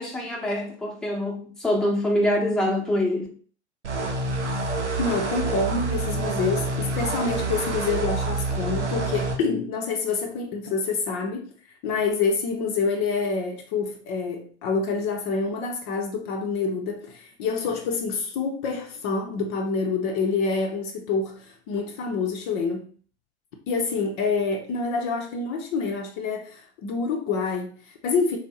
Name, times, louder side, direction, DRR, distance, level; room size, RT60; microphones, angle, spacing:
voice 1, 0.0-3.3, left 1 dB, ahead, 0.9 m, -25 dB
sound 1, 3.8-9.4, right 3 dB, 85° right, 0.8 m, -27 dB
voice 2, 5.0-11.5 11.8-22.8 23.7-28.4, left 4 dB, 40° left, 0.7 m, -27 dB
3.4 x 2.6 x 4.0 m
figure-of-eight pair, 90°, 34 cm